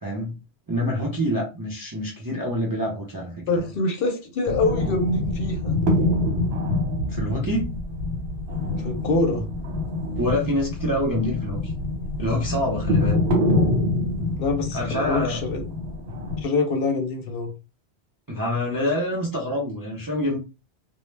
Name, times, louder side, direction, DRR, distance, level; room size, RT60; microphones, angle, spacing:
voice 1, 0.0-0.3 0.7-3.6 7.1-7.8 10.2-11.7 12.2-13.2 14.7-15.4 18.3-20.4, left 1 dB, 30° right, 0.4 m, -26 dB
voice 2, 3.5-5.7 8.8-9.5 14.4-15.6 16.4-17.5, left 3 dB, 65° left, 0.7 m, -25 dB
sound 1, 4.4-16.4, left 2 dB, 70° right, 1.0 m, -26 dB
2.0 x 2.0 x 3.1 m
omnidirectional pair, 1.1 m